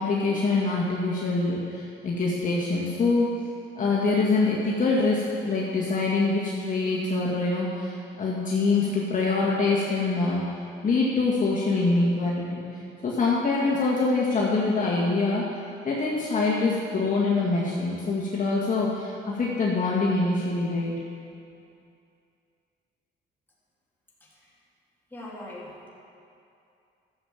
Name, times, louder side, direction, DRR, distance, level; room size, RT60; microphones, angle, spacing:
voice 1, 0.0-3.3 3.8-10.4 10.8-12.6 13.0-15.5 15.8-20.9, left 3 dB, 40° left, -5 dB, 1.9 m, -24 dB
voice 2, 24.2-24.5 25.1-25.9, left 1 dB, 10° left, -6 dB, 3.3 m, -42 dB
12.5 x 7.4 x 7.3 m, 2.6 s
cardioid pair, 90°, 20 cm